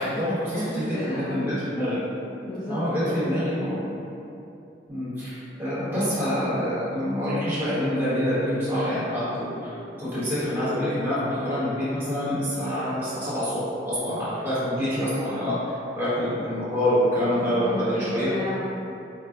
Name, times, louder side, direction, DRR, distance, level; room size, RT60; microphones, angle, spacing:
voice 1, 0.0-2.0 2.7-3.8 4.9-9.7 10.0-13.6 13.9-15.6 15.9-18.3, equal, 10° right, -13 dB, 1.1 m, -26 dB
voice 2, 0.5-1.4 2.4-3.8 17.2-18.6, left 1 dB, 25° left, -11 dB, 0.5 m, -33 dB
4.5 x 2.2 x 2.4 m, 2.7 s
head